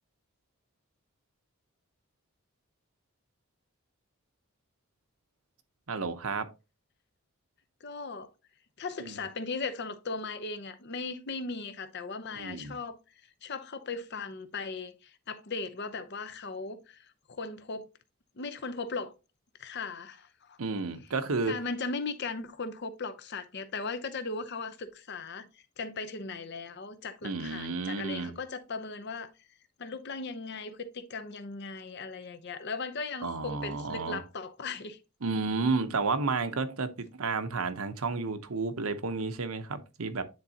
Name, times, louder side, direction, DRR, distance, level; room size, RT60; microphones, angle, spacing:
voice 1, 5.9-6.5 9.0-9.2 12.3-12.8 20.6-21.5 27.2-28.3 33.2-34.2 35.2-40.2, right 4 dB, 75° right, 0.8 m, -31 dB
voice 2, 7.8-8.3 8.8-13.0 13.4-17.9 18.4-19.1 19.6-20.6 21.5-29.3 29.8-35.0, left 4 dB, 50° left, 0.7 m, -38 dB
9.7 x 3.9 x 2.8 m
head